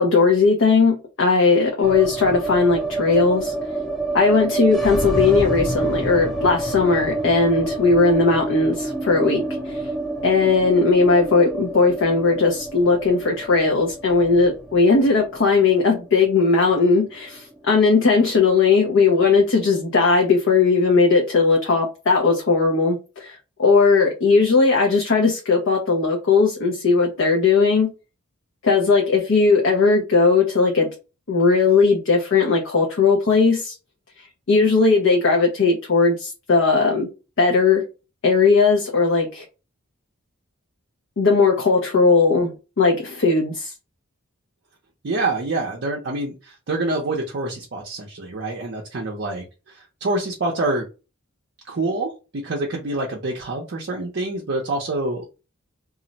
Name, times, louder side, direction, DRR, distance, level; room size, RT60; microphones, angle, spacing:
voice 1, 0.0-3.5 4.1-9.9 10.2-27.9 28.6-30.9 31.3-33.8 34.5-37.1 37.4-37.8 38.2-39.4 41.2-43.7, left 4 dB, 60° left, 0.6 m, -18 dB
sound 1, 1.8-17.9 18.2-18.3 18.6-19.3, right 2 dB, ahead, 0.5 m, -28 dB
voice 2, 45.0-50.9 51.7-55.3, right 2 dB, 55° right, 0.6 m, -26 dB
2.4 x 2.0 x 3.9 m
head